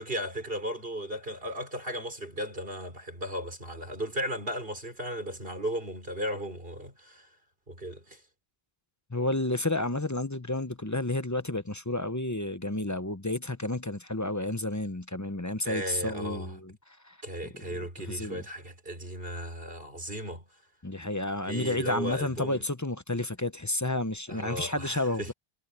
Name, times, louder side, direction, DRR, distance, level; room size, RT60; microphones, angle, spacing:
voice 1, 0.0-7.3 7.7-8.2 15.7-16.6 17.2-20.4 21.5-22.6 24.3-25.3, equal, 65° right, 5.5 m, -36 dB
voice 2, 9.1-17.2 17.6-17.8 18.1-18.4 20.8-25.3, left 2 dB, 20° left, 0.8 m, -31 dB
omnidirectional pair, 1.1 m